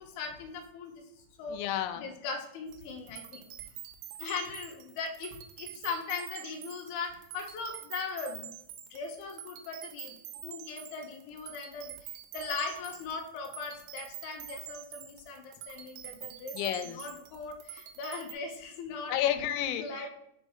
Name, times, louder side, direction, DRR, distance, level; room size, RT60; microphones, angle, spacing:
voice 1, 0.0-1.6 2.0-3.5 4.2-8.5 8.9-16.6 16.8-19.1 19.8-20.1, left 4 dB, 75° left, 2 dB, 2.0 m, -39 dB
voice 2, 1.5-2.1 16.5-17.1 19.1-20.2, left 11 dB, 90° left, 10 dB, 2.5 m, -31 dB
sound 1, 2.7-18.3, right 12 dB, 80° right, 2.3 m, -46 dB
5.0 x 4.6 x 4.3 m, 0.74 s
omnidirectional pair, 4.4 m